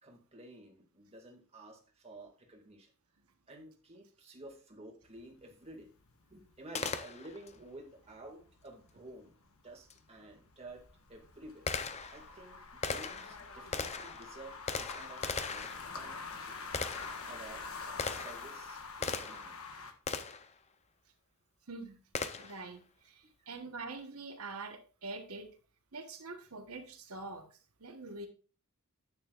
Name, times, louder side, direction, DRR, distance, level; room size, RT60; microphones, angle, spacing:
voice 1, 0.0-2.9 3.5-5.9 6.3-9.3 9.6-10.8 11.1-11.7 12.1-16.7 17.3-19.6 23.4-23.5, right 1 dB, 30° right, 1 dB, 2.2 m, -52 dB
sound 1, 5.0-19.9, left 4 dB, 75° left, 1.3 m, -47 dB
Gunshot gunfire, 6.7-7.6 9.9-10.0 10.7-19.6 20.1-20.5 22.1-22.7, left 5 dB, 30° left, 0.7 m, -39 dB
voice 2, 21.7-22.0 22.4-25.5 25.9-28.3, right 3 dB, 85° right, 5 dB, 1.2 m, -45 dB
10.5 x 8.9 x 2.5 m, 0.37 s
head